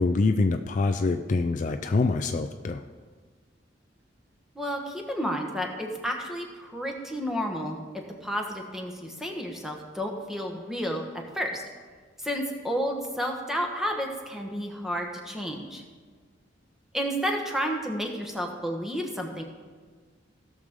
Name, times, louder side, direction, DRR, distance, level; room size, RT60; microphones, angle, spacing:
voice 1, 0.0-2.8, left 3 dB, 40° left, 7 dB, 0.4 m, -25 dB
voice 2, 4.5-7.8 8.2-11.6 12.2-15.8 16.9-19.4, equal, ahead, 1 dB, 1.2 m, -31 dB
17.0 x 6.5 x 3.7 m, 1.5 s
head